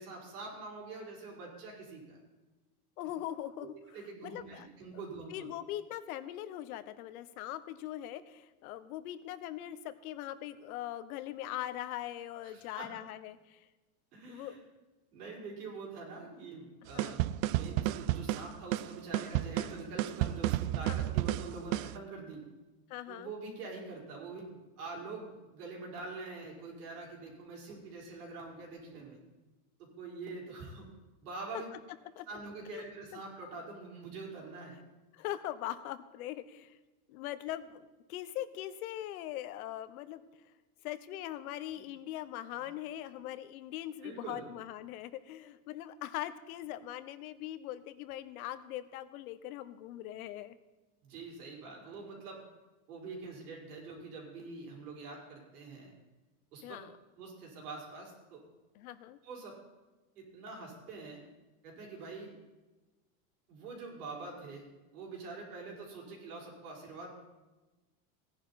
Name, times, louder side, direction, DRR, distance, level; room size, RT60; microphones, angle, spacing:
voice 1, 0.0-2.2 3.6-5.5 12.4-12.9 14.1-14.6 15.1-22.5 23.1-29.2 29.8-30.9 31.2-31.7 32.3-34.8 41.7-41.8 42.5-42.6 44.0-44.4 51.0-52.4 52.9-55.9 56.5-56.8 57.2-58.4 59.2-59.6 60.1-61.2 61.6-62.3 63.5-64.6 64.9-67.1, right 3 dB, 90° right, -2 dB, 5.2 m, -45 dB
voice 2, 3.0-3.7 4.2-4.7 5.3-13.7 14.3-14.6 16.9-17.2 20.8-21.0 22.9-23.3 32.2-32.3 32.7-33.2 35.1-36.8 37.1-40.5 40.8-50.6 56.6-56.9 58.7-59.2, left 13 dB, 75° left, 13 dB, 1.0 m, -41 dB
sound 1, 17.0-22.0, right 15 dB, 65° right, 0.6 m, -32 dB
16.5 x 10.5 x 4.2 m, 1.1 s
supercardioid pair, 145°, 44 cm